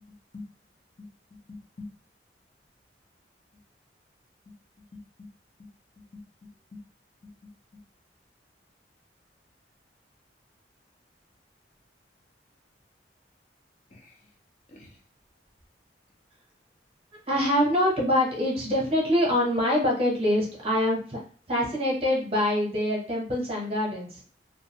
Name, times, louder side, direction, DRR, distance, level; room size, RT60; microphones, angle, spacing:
voice 1, 1.0-1.9 4.5-4.6 4.9-5.3 5.6-5.7 6.1-6.8 7.2-7.5 13.9-14.3 14.7-15.0, left 3 dB, 40° left, -1 dB, 0.7 m, -46 dB
voice 2, 17.3-21.2 21.5-24.2, left 1 dB, 35° right, -1 dB, 0.9 m, -25 dB
2.5 x 2.3 x 2.8 m, 0.44 s
head